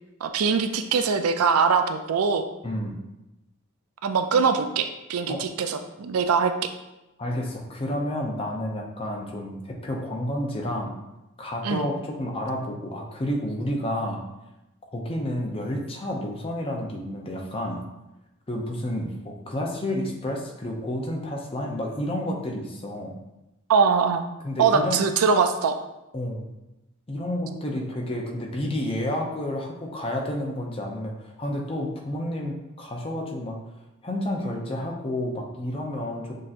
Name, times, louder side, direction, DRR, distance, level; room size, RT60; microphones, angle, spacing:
voice 1, 0.2-2.5 4.0-6.5 11.6-11.9 23.7-24.2 24.6-25.8, right 5 dB, 85° right, 8 dB, 0.4 m, -22 dB
voice 2, 7.2-10.9 11.4-14.2 14.9-17.8 18.5-23.2 24.4-25.0 26.1-26.5 27.1-33.6 34.0-36.3, left 1 dB, 25° left, 0 dB, 0.6 m, -30 dB
6.3 x 2.8 x 2.5 m, 0.95 s
head